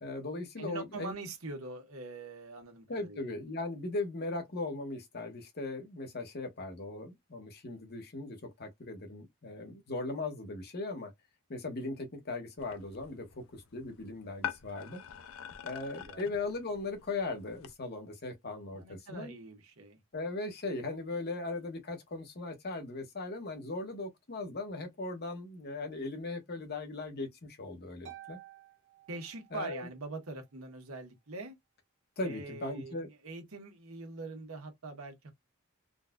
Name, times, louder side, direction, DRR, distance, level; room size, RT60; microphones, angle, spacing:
voice 1, 0.0-1.1 2.9-11.1 11.5-15.0 15.6-19.3 20.1-27.3 27.6-28.4 29.5-29.9 32.2-33.1, left 2 dB, 50° left, 1.0 m, -38 dB
voice 2, 0.6-3.2 16.0-16.4 18.7-20.0 29.1-31.6 32.2-32.9 33.2-35.3, right 3 dB, 80° right, 1.1 m, -43 dB
sound 1, 12.6-17.7, left 8 dB, 70° left, 0.4 m, -45 dB
Harp, 28.1-29.9, right 11 dB, 55° right, 1.1 m, -52 dB
3.8 x 2.4 x 2.2 m
head